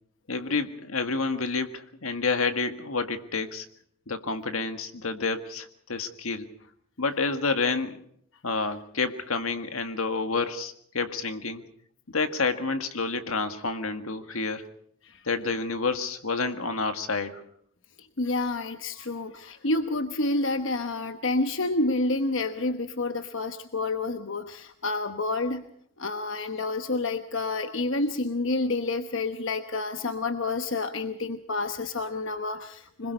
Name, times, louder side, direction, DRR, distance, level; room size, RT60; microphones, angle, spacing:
voice 1, 0.3-3.7 4.1-6.5 7.0-8.0 8.4-11.6 12.1-14.6 15.3-17.3, left 4 dB, 85° left, 8 dB, 1.8 m, -29 dB
voice 2, 18.2-25.6 26.0-33.1, left 2 dB, 60° left, 8 dB, 1.0 m, -29 dB
26.0 x 21.0 x 5.4 m, 0.67 s
head